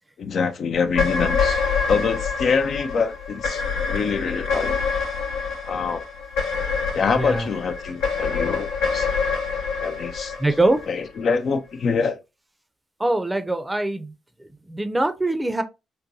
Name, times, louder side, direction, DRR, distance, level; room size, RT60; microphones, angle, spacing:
voice 1, 0.2-1.6 1.9-3.6 3.9-4.8 5.6-6.0 6.9-9.1 9.8-10.3 10.9-12.2, left 5 dB, 60° left, 0.4 m, -25 dB
sound 1, 0.8-11.3, left 5 dB, 80° left, 0.8 m, -26 dB
voice 2, 7.2-7.5 10.4-10.8 13.0-14.1 14.4-15.6, right 2 dB, 15° right, 0.5 m, -23 dB
3.9 x 2.2 x 2.6 m
hypercardioid pair, 45°, 0 cm